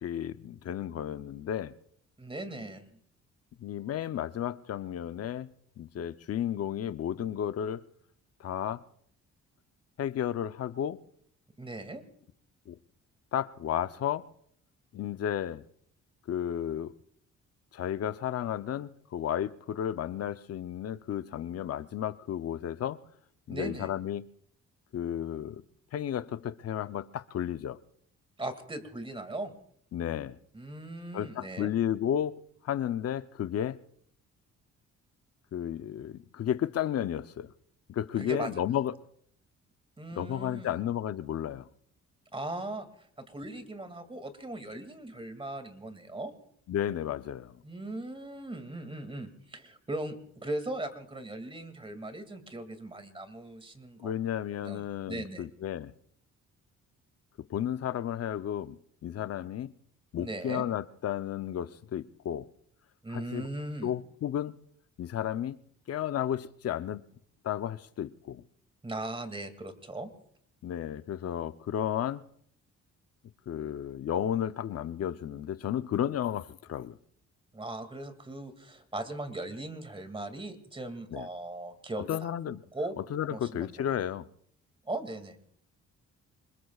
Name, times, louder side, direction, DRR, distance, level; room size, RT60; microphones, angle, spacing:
voice 1, 0.0-1.7 3.6-5.5 5.8-7.8 8.4-8.8 10.0-11.0 12.7-12.8 13.3-14.3 14.9-15.6 16.3-16.9 17.7-23.0 23.5-24.2 24.9-25.6 25.9-27.8 29.9-30.4 31.1-32.4 32.6-33.8 35.5-37.5 37.9-38.9 40.2-41.7 46.7-47.6 54.0-55.9 57.5-59.7 60.1-62.5 63.1-63.5 63.8-64.6 65.0-65.6 65.9-67.0 67.4-68.4 70.6-72.2 73.5-77.0 81.1-81.3 82.1-82.6 83.1-84.3, left 10 dB, 55° left, 0.7 m, -33 dB
voice 2, 2.2-2.8 11.6-12.0 23.5-23.9 28.4-29.5 30.5-31.7 38.2-38.5 40.0-40.8 42.3-42.9 43.3-46.3 47.6-54.1 54.6-55.5 60.2-60.7 63.0-63.9 68.8-70.1 77.5-82.3 82.7-82.9 83.3-83.8 84.9-85.4, right 2 dB, 20° right, 2.3 m, -39 dB
26.5 x 20.5 x 2.4 m
cardioid pair, 90°, 30 cm